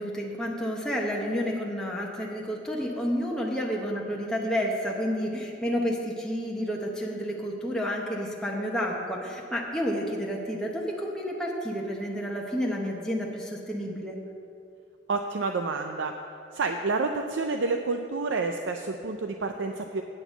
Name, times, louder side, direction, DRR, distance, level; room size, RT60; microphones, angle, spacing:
voice 1, 0.0-14.2, equal, 5° left, -2 dB, 0.9 m, -30 dB
voice 2, 15.1-16.1 16.5-20.0, right 3 dB, 85° right, 5 dB, 0.5 m, -29 dB
8.9 x 6.0 x 8.1 m, 2.5 s
head